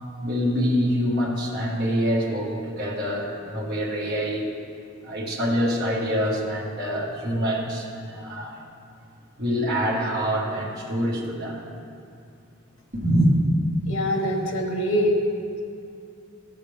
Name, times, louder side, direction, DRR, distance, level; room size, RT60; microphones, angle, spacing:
voice 1, 0.2-4.5 5.0-8.6 9.4-11.6 13.0-13.3, equal, 50° right, -5 dB, 1.6 m, -25 dB
voice 2, 13.9-15.2, equal, 80° left, 2 dB, 1.2 m, -24 dB
13.5 x 6.7 x 3.4 m, 2.4 s
head